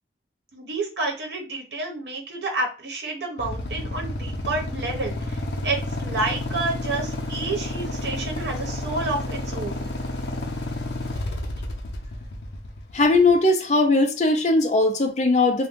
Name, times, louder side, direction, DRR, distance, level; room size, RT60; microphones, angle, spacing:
voice 1, 0.5-9.9, right 2 dB, 75° right, 0.9 m, -29 dB
Motorcycle / Idling, 3.4-13.3, left 1 dB, 80° left, 0.7 m, -30 dB
voice 2, 12.9-15.7, left 2 dB, 40° left, 0.5 m, -19 dB
2.6 x 2.3 x 3.6 m
head